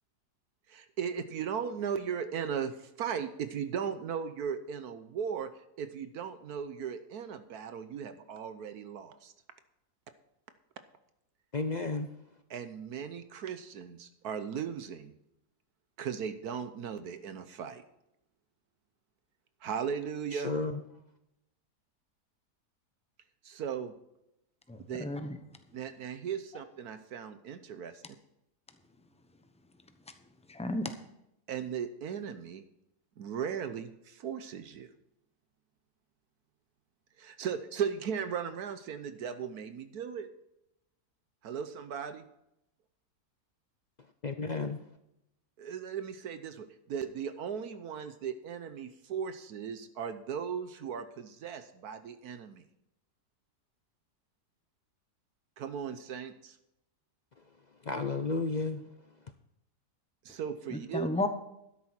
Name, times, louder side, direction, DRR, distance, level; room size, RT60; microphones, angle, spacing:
voice 1, 0.7-5.5 5.8-9.3 12.5-15.1 16.0-17.8 19.6-20.5 23.4-23.9 24.9-25.1 25.7-28.0 31.5-32.6 33.2-34.9 37.2-40.3 41.4-42.3 45.6-52.6 55.6-56.6 60.2-61.1, right 7 dB, 75° right, 1.3 m, -37 dB
voice 2, 11.5-12.1 20.3-20.8 44.2-44.8 57.8-58.8, left 3 dB, 65° left, 0.4 m, -32 dB
voice 3, 24.7-25.4 30.5-30.9 60.7-61.3, left 2 dB, 5° left, 0.6 m, -33 dB
12.5 x 10.5 x 4.4 m
omnidirectional pair, 1.7 m